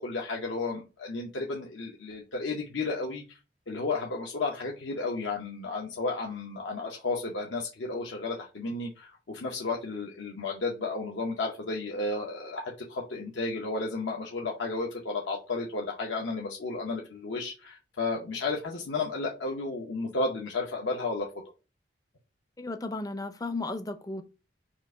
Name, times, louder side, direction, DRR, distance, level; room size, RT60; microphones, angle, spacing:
voice 1, 0.0-3.4 3.7-21.3, left 3 dB, 75° left, 0.7 m, -33 dB
voice 2, 22.6-24.2, left 2 dB, 20° left, 0.4 m, -34 dB
4.5 x 2.5 x 4.7 m
head